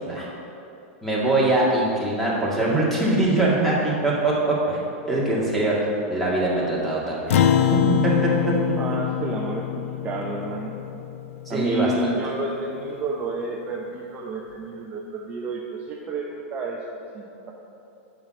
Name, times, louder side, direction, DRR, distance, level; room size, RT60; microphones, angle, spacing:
voice 1, 1.0-4.8 5.1-5.7 6.1-7.4 7.8-8.5 11.5-12.1, right 2 dB, ahead, -6 dB, 1.9 m, -22 dB
Acoustic guitar, 7.3-12.0, left 10 dB, 80° left, 0.5 m, -24 dB
voice 2, 8.7-10.7 11.5-17.5, right 3 dB, 20° right, -2 dB, 0.7 m, -30 dB
7.2 x 5.9 x 6.1 m, 2.8 s
supercardioid pair, 150°, 7 cm